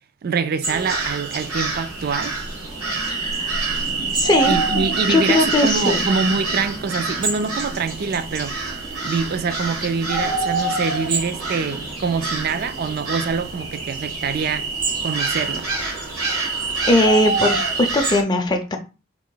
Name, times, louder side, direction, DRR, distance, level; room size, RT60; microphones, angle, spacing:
voice 1, 0.2-2.3 4.5-8.6 9.0-14.7 15.0-15.7, right 5 dB, 45° right, 0.3 m, -25 dB
sound 1, 0.6-18.2, right 3 dB, 85° right, 1.6 m, -25 dB
voice 2, 3.1-3.6 4.1-4.6 5.1-6.0 16.8-18.8, left 2 dB, 20° left, 0.4 m, -19 dB
3.6 x 2.9 x 3.8 m
head